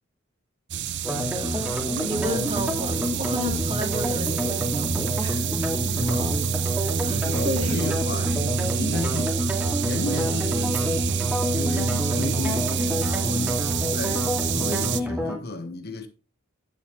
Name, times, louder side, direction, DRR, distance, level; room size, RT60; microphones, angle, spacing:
sound 1, 0.7-15.0, right 7 dB, 60° right, 0.6 m, -27 dB
sound 2, 1.0-15.4, left 1 dB, 10° right, 2.0 m, -28 dB
voice 1, 1.2-5.4 7.1-7.2 7.4-7.8, equal, 30° right, 2.2 m, -32 dB
voice 2, 5.9-6.4 7.0-9.4 9.8-11.1 11.5-16.1, left 2 dB, 50° left, 1.2 m, -33 dB
9.3 x 9.0 x 3.1 m
head